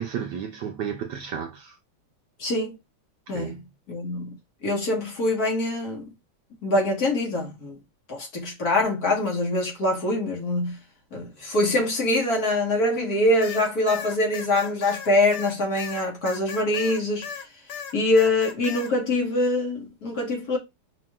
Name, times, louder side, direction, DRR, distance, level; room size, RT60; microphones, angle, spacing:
voice 1, 0.0-1.8 3.3-3.6, right 8 dB, 70° right, 1.1 m, -32 dB
voice 2, 2.4-2.8 3.3-3.6 3.9-6.0 6.6-7.8 8.1-10.8 11.1-17.3 17.9-20.6, left 2 dB, 50° left, 1.7 m, -24 dB
sound 1, 13.4-17.4 17.7-18.9, left 7 dB, 65° left, 1.1 m, -36 dB
5.0 x 3.0 x 2.3 m
omnidirectional pair, 2.3 m